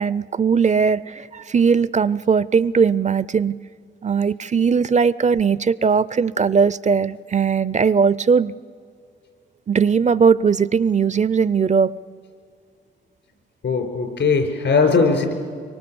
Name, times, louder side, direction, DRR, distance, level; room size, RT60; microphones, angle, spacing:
voice 1, 0.0-3.6 4.0-8.5 9.7-11.9, right 6 dB, 35° right, 18 dB, 0.5 m, -19 dB
voice 2, 13.6-15.3, left 4 dB, 70° left, 5 dB, 4.6 m, -19 dB
24.5 x 24.0 x 7.0 m, 2.2 s
cardioid pair, 65°, 20 cm